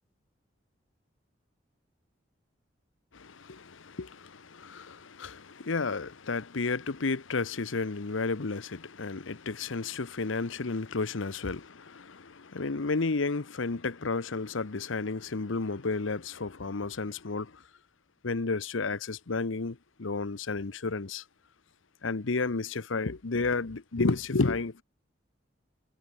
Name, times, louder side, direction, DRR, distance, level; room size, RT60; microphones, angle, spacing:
voice 1, 3.1-17.6 18.2-21.2 22.0-24.8, left 3 dB, 90° left, 0.9 m, -32 dB
head